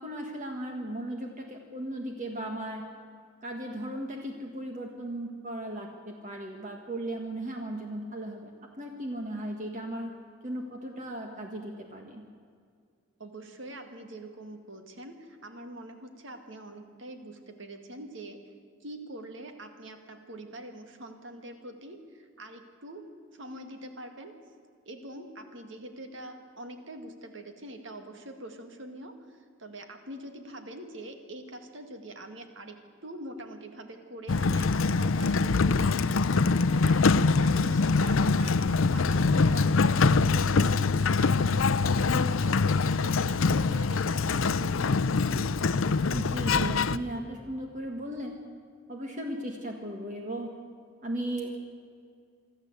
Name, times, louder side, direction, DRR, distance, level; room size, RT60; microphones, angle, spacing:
voice 1, 0.0-2.9 3.4-8.5 8.8-10.1 10.4-12.2 46.1-48.3 48.9-50.5 51.0-51.6, right 1 dB, 40° right, 2 dB, 1.6 m, -36 dB
voice 2, 13.2-18.5 18.8-24.4 24.9-41.5 41.9-44.9, right 1 dB, 65° right, 6 dB, 2.1 m, -44 dB
Sliding door, 34.3-47.0, left 4 dB, 80° left, 0.6 m, -24 dB
24.5 x 13.0 x 8.1 m, 2.2 s
head